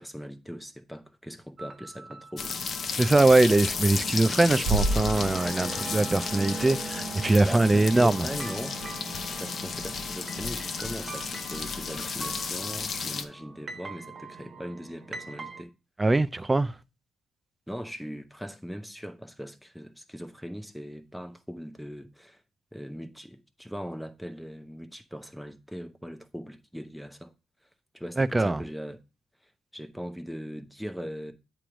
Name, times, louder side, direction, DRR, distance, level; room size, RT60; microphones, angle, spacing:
voice 1, 0.0-2.5 7.4-8.8 9.4-15.7 17.7-22.4 22.7-27.3 27.9-29.0 29.7-31.3, equal, ahead, 0.9 m, -39 dB
sound 1, 1.6-15.6, right 4 dB, 35° right, 0.8 m, -41 dB
sound 2, 2.4-13.2, left 5 dB, 50° left, 0.7 m, -33 dB
voice 2, 2.9-8.3 16.0-16.7 28.2-28.6, right 2 dB, 15° right, 0.4 m, -22 dB
Bass drum, 4.7-6.1, right 2 dB, 55° right, 1.1 m, -29 dB
8.5 x 3.1 x 5.0 m
cardioid pair, 90°, 0 cm